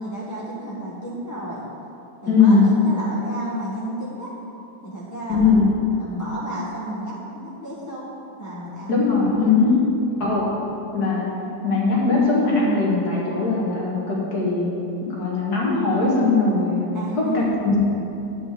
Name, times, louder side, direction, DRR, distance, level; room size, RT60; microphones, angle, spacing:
voice 1, 0.0-1.7 2.2-4.3 4.8-8.1 8.4-9.0 9.6-9.9 16.9-17.5, right 1 dB, 10° left, -7 dB, 1.1 m, -32 dB
voice 2, 2.3-2.7 5.3-5.7 8.9-9.7 10.2-10.4 10.9-11.2 11.6-14.7 15.1-16.9 17.3-17.8, left 4 dB, 60° left, -5 dB, 2.4 m, -19 dB
8.3 x 5.9 x 7.6 m, 2.9 s
omnidirectional pair, 1.9 m